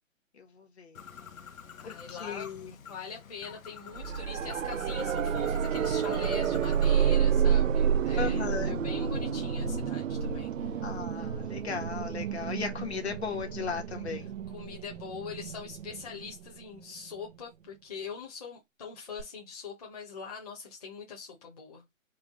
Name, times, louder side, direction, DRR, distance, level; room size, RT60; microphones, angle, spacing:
voice 1, 0.4-1.0 1.8-2.7 8.2-8.8 10.8-14.3, left 6 dB, 50° left, 1.4 m, -36 dB
Bird, 0.9-7.0, left 7 dB, 80° left, 0.8 m, -48 dB
voice 2, 1.8-10.9 13.3-13.4 14.5-21.8, left 6 dB, 30° left, 1.0 m, -43 dB
sound 1, 4.0-16.8 19.2-19.3, right 7 dB, 70° right, 0.5 m, -29 dB
3.6 x 2.4 x 3.6 m
hypercardioid pair, 160°, 40 cm